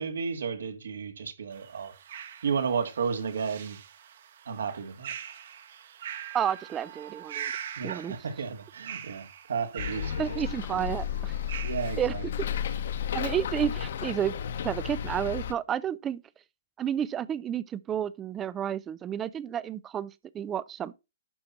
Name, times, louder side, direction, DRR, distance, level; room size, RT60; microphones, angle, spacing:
voice 1, 0.0-1.9 2.4-3.8 4.5-5.1 7.8-10.4 11.6-12.2, right 6 dB, 80° right, 2.1 m, -32 dB
sound 1, 1.5-11.9, right 9 dB, 45° right, 1.1 m, -43 dB
voice 2, 6.3-7.5 7.8-8.2 10.2-11.3 12.0-12.1 13.1-14.3 14.6-16.2 16.8-20.9, right 9 dB, 10° right, 0.4 m, -31 dB
Bus, 9.8-15.5, left 9 dB, 50° left, 1.2 m, -33 dB
11.5 x 4.3 x 5.8 m
hypercardioid pair, 175°, 0 cm